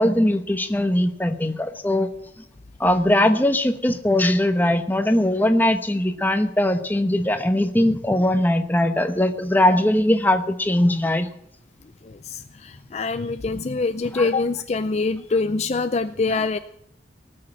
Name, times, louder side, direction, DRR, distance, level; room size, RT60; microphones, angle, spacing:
voice 1, 0.0-2.1 2.8-11.3 14.2-14.3 16.3-16.4, left 1 dB, 10° left, 7 dB, 1.0 m, -20 dB
voice 2, 12.0-16.6, left 3 dB, 40° left, 10 dB, 0.5 m, -25 dB
18.5 x 6.7 x 8.8 m, 0.72 s
head